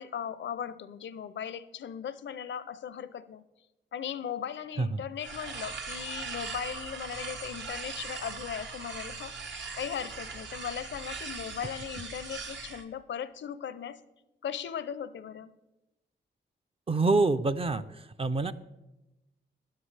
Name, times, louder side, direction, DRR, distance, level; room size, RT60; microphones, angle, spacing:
voice 1, 0.0-3.4 3.9-14.0 14.4-15.5, left 8 dB, 75° left, 15 dB, 0.5 m, -38 dB
sound 1, 5.2-12.8, right 4 dB, 70° right, 1.1 m, -40 dB
voice 2, 16.9-17.8 18.2-18.5, right 3 dB, 30° right, 11 dB, 0.4 m, -26 dB
13.0 x 9.5 x 3.3 m, 1.0 s
cardioid pair, 80°, 19 cm